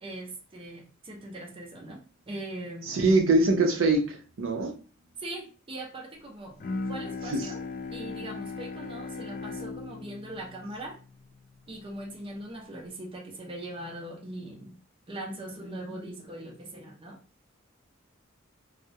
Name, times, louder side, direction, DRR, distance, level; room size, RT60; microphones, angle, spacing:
voice 1, 0.0-2.0 2.3-3.1 5.2-7.6 7.9-11.0 11.7-14.8 15.1-17.2, right 1 dB, 25° right, 0 dB, 0.5 m, -40 dB
voice 2, 2.9-4.7 7.3-7.4, right 2 dB, 85° right, 3 dB, 0.5 m, -23 dB
Bowed string instrument, 6.6-12.0, left 4 dB, 45° left, 0.3 m, -38 dB
2.2 x 2.0 x 2.7 m, 0.35 s
head